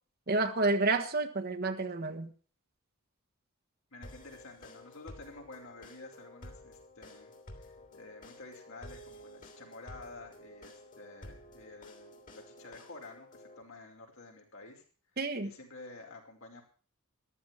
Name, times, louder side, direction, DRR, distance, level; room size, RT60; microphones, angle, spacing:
voice 1, 0.3-2.3 15.2-15.5, right 3 dB, 45° right, 5 dB, 1.4 m, -30 dB
voice 2, 3.9-7.3 7.6-14.8 15.4-16.6, left 3 dB, 65° left, 1 dB, 5.1 m, -50 dB
sound 1, 4.0-13.6, left 1 dB, 40° left, 3.1 m, -52 dB
14.0 x 12.5 x 5.9 m, 0.40 s
head